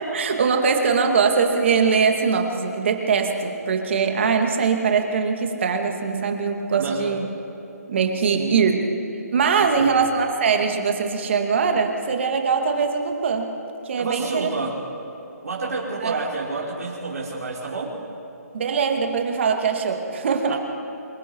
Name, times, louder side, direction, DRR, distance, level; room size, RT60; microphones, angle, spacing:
voice 1, 0.0-7.3 7.9-8.8 9.3-13.5 13.9-14.5 16.0-16.2 18.5-20.6, right 5 dB, 45° right, 3 dB, 2.5 m, -22 dB
voice 2, 6.8-7.2 8.3-8.7 9.6-9.9 13.9-14.9 15.4-18.0 20.5-20.6, right 3 dB, 70° right, -5 dB, 4.6 m, -29 dB
26.5 x 21.0 x 4.8 m, 2.9 s
hypercardioid pair, 165°, 9 cm